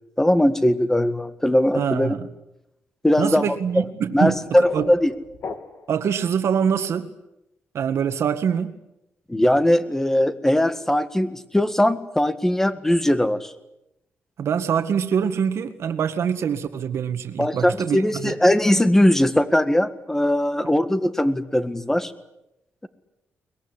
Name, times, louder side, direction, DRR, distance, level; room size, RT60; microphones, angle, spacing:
voice 1, 0.2-2.1 3.0-3.8 4.1-5.1 9.3-13.5 17.4-22.1, left 1 dB, 10° left, 11 dB, 1.8 m, -20 dB
voice 2, 1.7-2.3 3.2-4.9 5.9-7.1 7.7-8.8 14.4-18.3, right 7 dB, 70° right, 8 dB, 1.9 m, -24 dB
sound 1, 4.1-6.1, left 5 dB, 60° left, 2.6 m, -36 dB
22.5 x 21.0 x 9.9 m, 0.87 s
cardioid pair, 105°, 5 cm